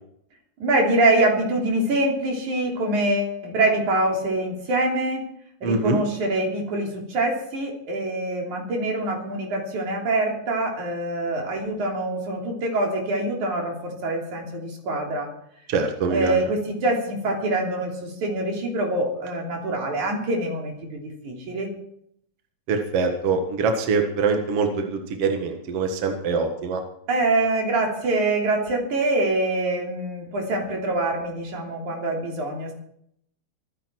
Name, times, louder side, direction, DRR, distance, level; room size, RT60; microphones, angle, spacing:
voice 1, 0.6-5.2 5.6-15.3 16.1-21.7 27.1-32.7, right 2 dB, 80° right, 0 dB, 4.7 m, -25 dB
voice 2, 5.6-6.0 15.7-16.4 22.7-26.8, right 4 dB, 55° right, 4 dB, 2.4 m, -24 dB
25.5 x 10.0 x 4.6 m, 0.71 s
omnidirectional pair, 3.3 m